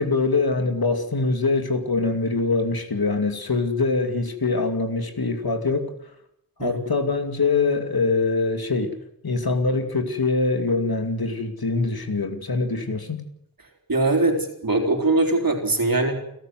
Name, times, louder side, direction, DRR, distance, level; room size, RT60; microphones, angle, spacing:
voice 1, 0.0-5.9 6.6-9.0 9.2-13.2, left 3 dB, 85° left, 2.6 m, -23 dB
voice 2, 13.9-16.1, right 2 dB, 70° right, 4.1 m, -21 dB
29.0 x 13.0 x 7.8 m
wide cardioid pair, 55°, 36 cm